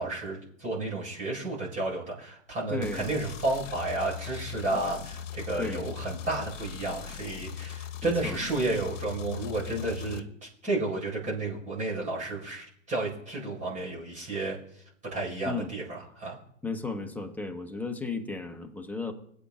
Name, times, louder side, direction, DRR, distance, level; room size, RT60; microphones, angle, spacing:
voice 1, 0.0-14.6 15.1-16.4, right 2 dB, 20° right, -3 dB, 5.1 m, -32 dB
voice 2, 2.7-3.1 5.6-5.9 8.0-8.4 15.4-15.7 16.0-16.1 16.6-19.1, left 3 dB, 5° left, 5 dB, 0.9 m, -34 dB
sound 1, 2.8-10.2, left 9 dB, 65° left, 1.0 m, -40 dB
21.0 x 8.4 x 2.5 m, 0.69 s
hypercardioid pair, 110°, 39 cm